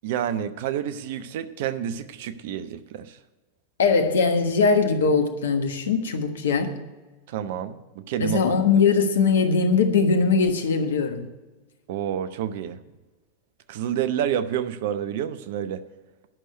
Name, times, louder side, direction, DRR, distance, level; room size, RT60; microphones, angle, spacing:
voice 1, 0.0-3.2 7.3-8.5 11.9-12.8 13.7-15.8, right 10 dB, 50° right, 11 dB, 0.7 m, -29 dB
voice 2, 3.8-6.8 8.2-11.3, left 5 dB, 65° left, 7 dB, 1.3 m, -21 dB
11.0 x 6.4 x 9.2 m, 1.2 s
figure-of-eight pair, 90°, 0 cm